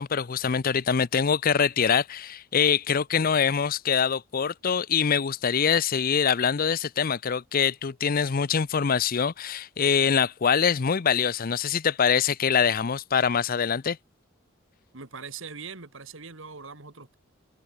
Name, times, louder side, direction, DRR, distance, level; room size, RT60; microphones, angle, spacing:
voice 1, 0.0-14.0, left 7 dB, 45° left, 0.5 m, -24 dB
voice 2, 14.9-17.1, right 5 dB, 65° right, 2.1 m, -41 dB
head